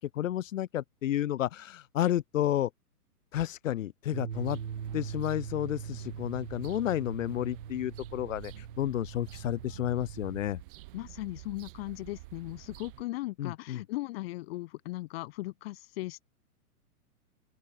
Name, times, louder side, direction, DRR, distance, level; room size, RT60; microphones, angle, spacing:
voice 1, 0.0-2.7 3.3-4.6 4.9-10.6 13.4-13.8, left 12 dB, 55° left, 1.5 m, -31 dB
sound 1, 4.1-10.4, right 8 dB, 90° right, 2.4 m, -41 dB
sound 2, 4.3-13.0, right 20 dB, 35° right, 1.7 m, -49 dB
voice 2, 10.9-16.2, left 19 dB, 40° left, 3.7 m, -38 dB
open air
hypercardioid pair, 150°, 46 cm